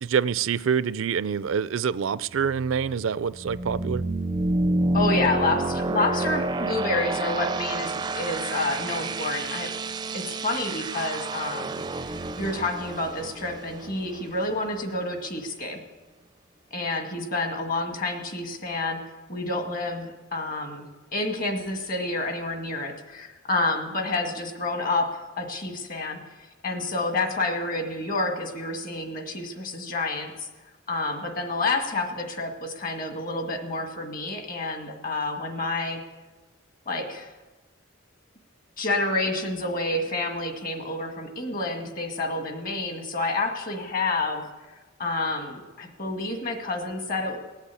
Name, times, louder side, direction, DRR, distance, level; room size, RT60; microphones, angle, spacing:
voice 1, 0.0-4.0, right 7 dB, 80° right, 18 dB, 0.4 m, -26 dB
sound 1, 2.3-15.0, right 2 dB, 20° right, 0.4 m, -29 dB
voice 2, 4.9-9.7 10.1-15.8 16.7-19.0 19.3-20.8 21.1-26.2 26.6-30.5 30.9-36.0 36.9-37.3 38.8-47.4, left 2 dB, 45° left, 4 dB, 2.0 m, -29 dB
18.5 x 8.1 x 8.5 m, 1.2 s
head